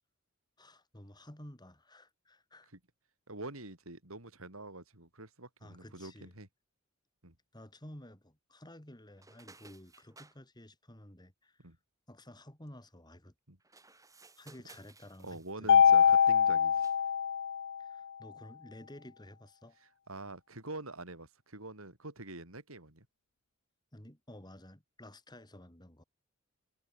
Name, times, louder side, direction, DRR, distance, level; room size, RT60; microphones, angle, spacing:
voice 1, 0.6-2.7 5.6-6.3 7.5-11.7 12.1-13.3 14.4-16.1 17.8-19.8 23.9-26.0, left 1 dB, 20° left, 3.8 m, -53 dB
voice 2, 3.3-6.5 7.2-7.3 11.6-11.8 13.5-13.6 15.2-16.9 20.1-23.1, right 2 dB, 85° right, 5.9 m, -46 dB
sound 1, 9.2-10.4 13.6-16.4 16.7-17.1, right 3 dB, 15° right, 5.5 m, -59 dB
Mallet percussion, 15.7-17.9, left 7 dB, 60° left, 0.5 m, -24 dB
head